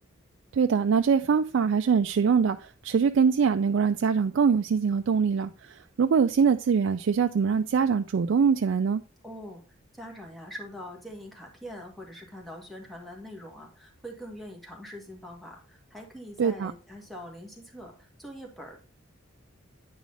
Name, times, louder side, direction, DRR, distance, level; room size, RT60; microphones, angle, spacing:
voice 1, 0.5-9.0 16.4-16.7, right 6 dB, 60° right, 0.3 m, -23 dB
voice 2, 9.2-9.6 9.9-18.8, equal, ahead, 1.6 m, -43 dB
9.3 x 4.8 x 3.9 m
head